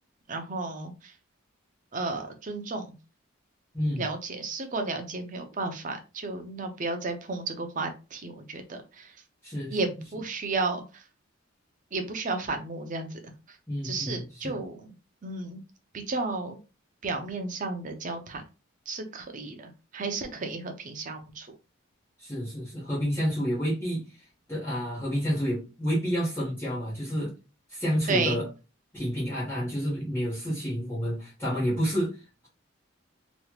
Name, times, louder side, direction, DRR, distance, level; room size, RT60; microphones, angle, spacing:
voice 1, 0.3-1.1 1.9-2.9 3.9-9.2 9.7-11.0 11.9-13.6 13.8-15.0 15.2-15.6 15.9-16.6 17.0-18.4 18.9-21.6 28.1-28.4, right 3 dB, 40° right, 6 dB, 0.6 m, -33 dB
voice 2, 9.4-9.8 13.7-14.6 22.2-24.2 24.5-27.3 27.7-28.5 28.9-32.5, equal, 10° left, -9 dB, 1.3 m, -29 dB
3.2 x 3.0 x 2.3 m, 0.30 s
head